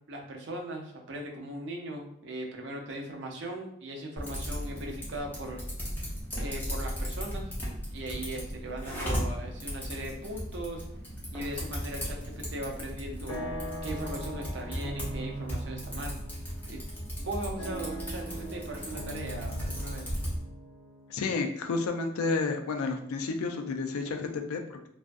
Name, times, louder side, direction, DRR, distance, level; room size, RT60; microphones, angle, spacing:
voice 1, 0.1-5.6 6.4-7.5 7.9-10.8 11.3-16.1 16.7-16.8 17.2-20.1, right 1 dB, 55° right, 1 dB, 0.5 m, -39 dB
Typing, 4.2-20.4, equal, 10° left, 0.5 m, -36 dB
sound 1, 11.9-12.5 12.8-22.8, right 1 dB, 65° left, 0.7 m, -42 dB
voice 2, 21.1-24.9, left 4 dB, 90° left, 5 dB, 0.3 m, -31 dB
2.4 x 2.3 x 2.5 m, 0.74 s
head